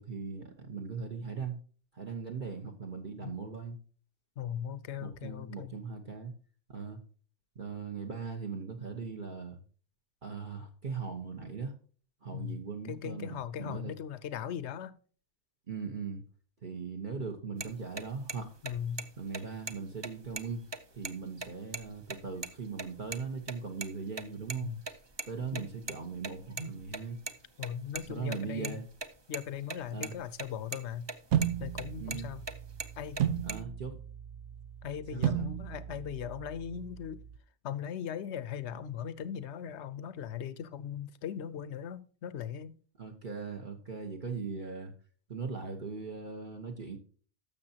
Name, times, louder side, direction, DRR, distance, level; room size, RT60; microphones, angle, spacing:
voice 1, 0.0-1.6 1.9-3.8 5.0-6.3 6.7-7.0 7.5-9.6 10.2-11.7 12.2-13.9 15.7-16.2 16.6-18.5 19.2-24.7 25.3-27.2 27.9-28.8 29.9-30.1 32.0-32.3 33.4-34.0 35.1-35.5 43.0-44.9 45.3-47.0, right 5 dB, 45° right, 1.2 m, -39 dB
voice 2, 4.4-5.7 12.3-12.6 12.8-14.9 18.6-19.1 24.6-24.8 25.5-25.7 27.6-28.8 29.3-31.1 31.6-32.4 33.0-33.2 34.8-37.2 37.6-42.8, left 9 dB, 75° left, 1.0 m, -39 dB
sound 1, 17.6-17.7 18.0-18.1 18.3-18.4 18.7-19.0 19.3-19.4 19.7-19.8 20.0-21.1 21.4-21.5 21.7-21.8 22.1-22.5 22.8-23.2 23.5-24.6 24.8-27.3 27.6-29.4 29.7-29.8 30.0-30.5 30.7-31.1 31.4-32.5 32.8-33.5, right 3 dB, 30° right, 0.6 m, -38 dB
sound 2, 31.3-37.4, right 10 dB, 80° right, 0.9 m, -35 dB
12.5 x 6.9 x 2.8 m
omnidirectional pair, 1.2 m